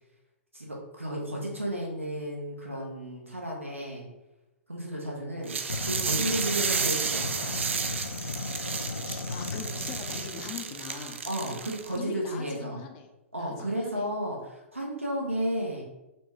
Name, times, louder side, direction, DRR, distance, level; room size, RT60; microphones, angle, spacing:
voice 1, 0.5-4.1 4.7-5.6 5.8-7.6 11.3-12.8 13.3-15.8, right 1 dB, 90° right, -2 dB, 0.8 m, -33 dB
sound 1, 5.5-12.0, right 6 dB, 70° right, 0.4 m, -32 dB
sound 2, 5.7-10.5, left 3 dB, 80° left, 0.3 m, -36 dB
voice 2, 9.0-13.1 13.4-14.1, left 6 dB, 40° left, 4 dB, 0.6 m, -42 dB
4.3 x 2.2 x 3.0 m, 0.98 s
figure-of-eight pair, 110°, 7 cm